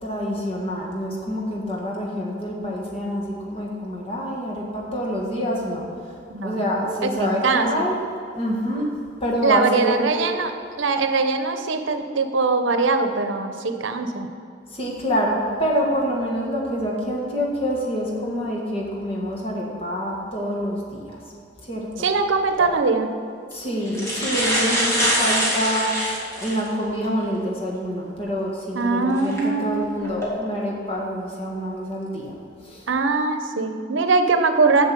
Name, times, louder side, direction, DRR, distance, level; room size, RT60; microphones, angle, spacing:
voice 1, 0.0-5.8 6.4-7.9 8.3-8.9 9.2-10.0 14.7-21.2 21.6-22.1 23.5-25.9 26.4-32.4 32.6-32.8, equal, 30° left, -2 dB, 1.7 m, -26 dB
voice 2, 6.3-6.6 7.0-7.9 9.4-14.3 22.0-23.1 28.7-29.9 32.9-34.9, right 4 dB, 90° right, 7 dB, 0.7 m, -22 dB
sound 1, 22.5-22.7 23.5-23.6 23.9-26.7 27.2-27.3 29.2-29.4 30.0-30.3, equal, 15° left, 2.1 m, -23 dB
7.4 x 7.0 x 7.5 m, 2.4 s
head